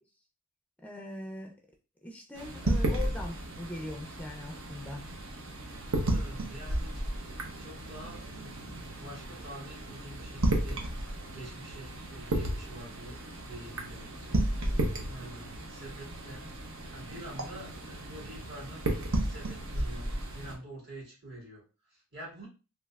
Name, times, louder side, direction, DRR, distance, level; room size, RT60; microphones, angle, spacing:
voice 1, 0.8-1.6 2.0-5.1 17.0-17.1, left 2 dB, 5° left, 0 dB, 0.4 m, -41 dB
sound 1, 2.4-20.5, right 1 dB, 70° right, 0.8 m, -34 dB
voice 2, 5.7-7.1 7.6-10.8 11.3-16.5 16.9-22.5, right 1 dB, 55° right, -3 dB, 1.8 m, -47 dB
3.1 x 3.1 x 2.3 m, 0.32 s
head